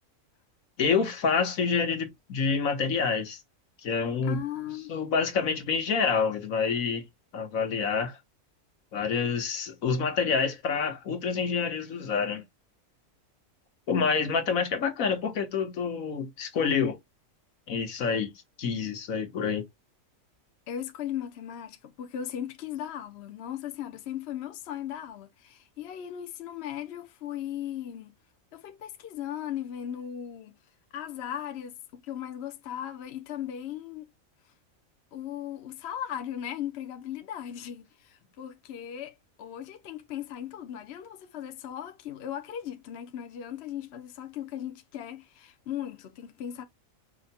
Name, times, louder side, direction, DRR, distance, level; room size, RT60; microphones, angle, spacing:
voice 1, 0.8-3.4 3.8-4.4 4.9-7.0 7.3-8.2 8.9-12.4 13.9-17.0 17.7-18.3 18.6-19.6, left 5 dB, 80° left, 1.5 m, -27 dB
voice 2, 4.2-4.9 20.7-28.2 28.5-30.6 30.9-34.1 35.1-46.6, left 10 dB, 60° left, 0.9 m, -37 dB
5.6 x 2.2 x 4.2 m
omnidirectional pair, 1.4 m